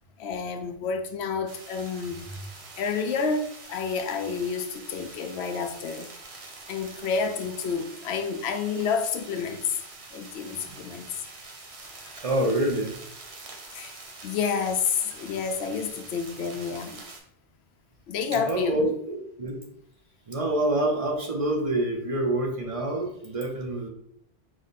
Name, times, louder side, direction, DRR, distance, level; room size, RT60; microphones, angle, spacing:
voice 1, 0.2-2.3 2.8-6.1 6.7-9.7 10.1-11.1 13.7-17.0 18.1-18.9, left 5 dB, 85° left, 0.8 m, -29 dB
sound 1, 1.5-17.2, right 3 dB, 80° right, 1.2 m, -45 dB
voice 2, 10.4-10.8 12.2-13.0 18.3-19.6 20.3-23.9, right 1 dB, 40° right, 0.7 m, -27 dB
4.9 x 2.1 x 4.0 m
omnidirectional pair, 1.1 m